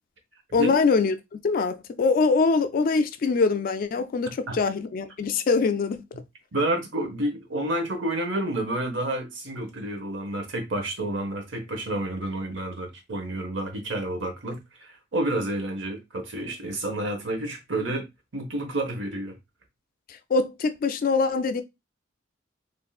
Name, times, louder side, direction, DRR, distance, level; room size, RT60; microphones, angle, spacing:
voice 1, 0.5-6.0 20.3-21.6, left 4 dB, 45° left, 0.3 m, -23 dB
voice 2, 6.5-18.0 18.3-19.4, right 1 dB, 65° right, 0.9 m, -29 dB
3.6 x 2.5 x 2.3 m
head